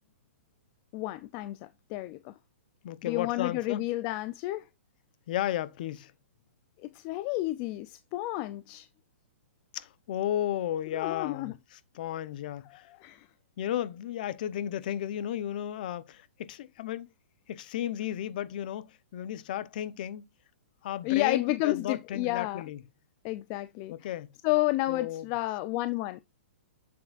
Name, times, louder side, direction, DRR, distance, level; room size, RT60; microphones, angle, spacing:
voice 1, 0.9-1.6 1.9-2.3 3.0-4.7 6.8-8.9 10.9-11.5 13.0-13.3 21.0-22.6 23.2-23.9 24.4-26.2, left 18 dB, 20° left, 0.3 m, -31 dB
voice 2, 2.8-3.8 5.3-6.1 9.7-12.9 13.6-17.1 17.5-20.3 20.8-22.8 23.9-24.3 24.9-25.2, left 11 dB, 40° left, 0.7 m, -34 dB
7.6 x 7.3 x 2.4 m
hypercardioid pair, 170°, 7 cm